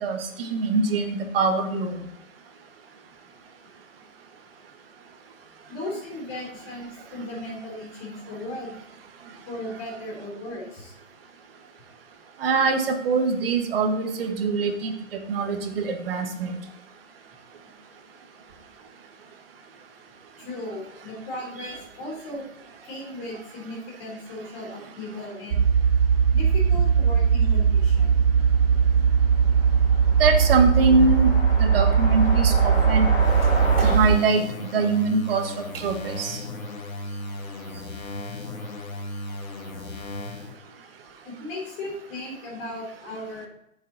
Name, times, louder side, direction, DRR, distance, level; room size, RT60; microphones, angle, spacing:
voice 1, 0.0-2.0 12.4-16.6 30.2-31.3 31.6-33.1 33.8-36.4, right 4 dB, 45° right, 6 dB, 1.3 m, -23 dB
voice 2, 5.7-8.8 9.5-10.9 20.4-22.5 22.8-25.6 26.3-28.1 35.1-35.2 41.2-43.5, left 1 dB, 25° left, -2 dB, 3.2 m, -36 dB
sound 1, 25.5-34.2, right 6 dB, 90° right, 0.5 m, -19 dB
sound 2, 26.5-26.6 26.8-26.9 27.2-34.0, left 3 dB, 10° left, 2.0 m, -33 dB
sound 3, 33.2-40.6, left 2 dB, 80° left, 1.4 m, -36 dB
7.4 x 7.1 x 3.8 m, 0.80 s
hypercardioid pair, 140°, 42 cm